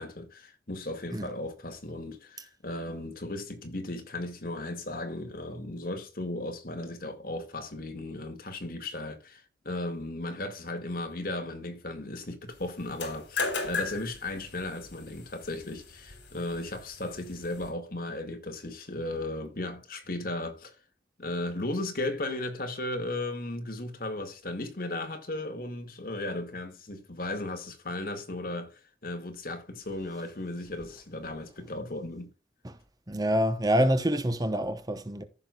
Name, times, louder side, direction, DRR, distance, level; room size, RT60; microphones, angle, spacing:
voice 1, 0.0-20.8 21.2-32.3, left 2 dB, 55° left, 2.1 m, -36 dB
sound 1, 12.8-17.7, left 4 dB, 80° left, 3.4 m, -37 dB
voice 2, 33.1-35.2, equal, 20° right, 0.9 m, -26 dB
15.0 x 6.2 x 2.4 m
head